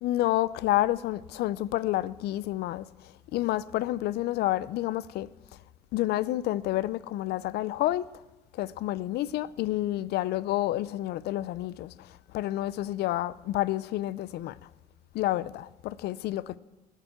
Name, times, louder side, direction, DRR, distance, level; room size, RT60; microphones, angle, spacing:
voice 1, 0.0-2.9 3.3-5.3 5.9-8.1 8.5-12.1 12.3-14.6 15.1-16.6, left 15 dB, 75° left, 0.5 m, -29 dB
15.5 x 6.9 x 8.7 m
cardioid pair, 110°, 17 cm